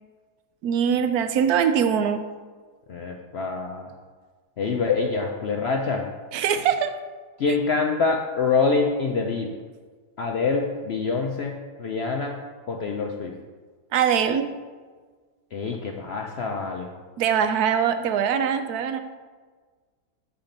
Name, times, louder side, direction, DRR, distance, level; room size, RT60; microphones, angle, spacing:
voice 1, 0.6-2.3 6.3-7.0 13.9-14.5 17.2-19.0, right 8 dB, 75° right, 8 dB, 1.0 m, -22 dB
voice 2, 2.9-3.9 4.6-6.1 7.4-9.5 10.2-12.4 12.7-13.3 15.5-16.9, left 4 dB, 60° left, 2 dB, 0.6 m, -25 dB
7.3 x 4.8 x 5.2 m, 1.5 s
omnidirectional pair, 1.7 m